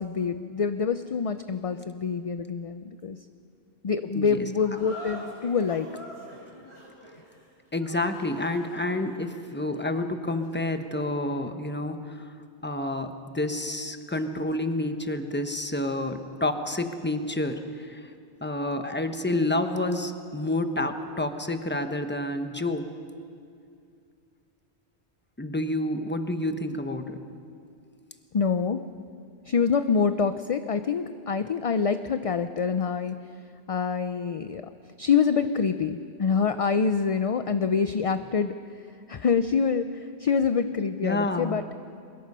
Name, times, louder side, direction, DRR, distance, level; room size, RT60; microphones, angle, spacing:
voice 1, 0.0-3.2 3.8-5.9 28.3-28.8 29.5-33.2 33.7-34.6 35.0-38.5 39.1-41.6, left 6 dB, 45° left, 10 dB, 0.5 m, -26 dB
sound 1, 4.6-11.3, equal, 85° left, 5.1 m, -45 dB
voice 2, 7.7-12.2 12.6-18.0 18.4-22.9 25.4-27.2 41.0-41.6, left 1 dB, 10° left, 7 dB, 1.0 m, -29 dB
23.5 x 21.0 x 5.5 m, 2.3 s
omnidirectional pair, 1.1 m